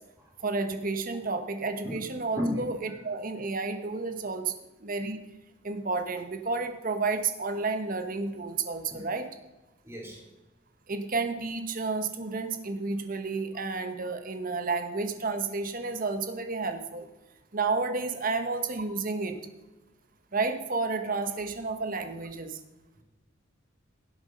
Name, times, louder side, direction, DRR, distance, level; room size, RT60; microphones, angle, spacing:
voice 1, 0.4-4.5 4.8-5.3 5.6-9.3 10.9-17.1 17.5-19.4 20.3-22.6, right 4 dB, 45° right, 7 dB, 1.1 m, -31 dB
voice 2, 9.8-10.2 13.5-13.7, left 1 dB, 15° right, -2 dB, 3.3 m, -33 dB
17.0 x 8.0 x 5.2 m, 1.1 s
head